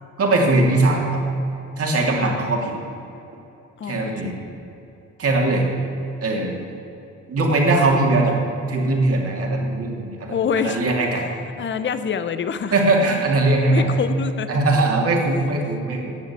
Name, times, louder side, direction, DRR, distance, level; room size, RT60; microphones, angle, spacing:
voice 1, 0.2-1.0 1.8-2.7 3.8-4.3 5.2-5.6 6.2-6.6 7.3-8.4 8.7-11.2 12.7-13.9 14.5-16.1, right 2 dB, 50° right, 0 dB, 2.7 m, -20 dB
voice 2, 3.8-4.4 10.3-10.8 11.6-12.7 13.7-14.5, left 7 dB, 40° left, 11 dB, 0.7 m, -26 dB
10.5 x 7.2 x 8.3 m, 2.9 s
cardioid pair, 90°, 30 cm